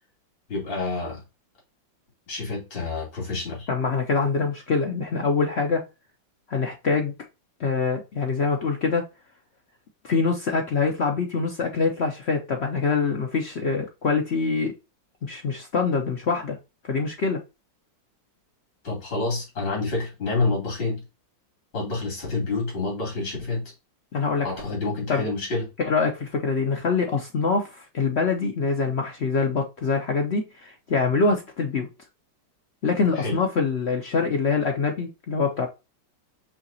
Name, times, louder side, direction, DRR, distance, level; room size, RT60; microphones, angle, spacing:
voice 1, 0.5-1.2 2.3-3.7 18.8-21.0 21.7-23.6 24.4-25.6 33.2-33.3, left 3 dB, 90° left, 3.3 m, -28 dB
voice 2, 3.7-5.9 6.5-7.1 7.6-9.1 10.0-14.8 15.2-16.6 16.8-17.4 24.1-24.5 25.1-25.3 25.8-31.9 32.8-35.7, left 4 dB, 65° left, 0.6 m, -24 dB
5.6 x 2.8 x 2.6 m
omnidirectional pair, 2.0 m